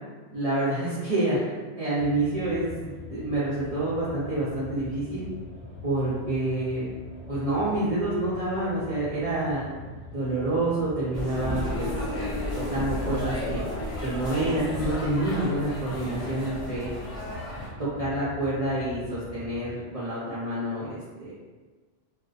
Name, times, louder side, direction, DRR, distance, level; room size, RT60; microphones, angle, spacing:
voice 1, 0.3-5.2 5.8-6.8 7.3-9.6 10.1-13.6 14.0-16.9 17.8-21.3, right 1 dB, 50° right, -9 dB, 0.4 m, -28 dB
sound 1, 2.0-19.7, left 2 dB, 70° left, 1.1 m, -43 dB
sound 2, 11.1-17.7, left 1 dB, 30° left, 0.7 m, -33 dB
2.5 x 2.1 x 2.3 m, 1.3 s
omnidirectional pair, 1.3 m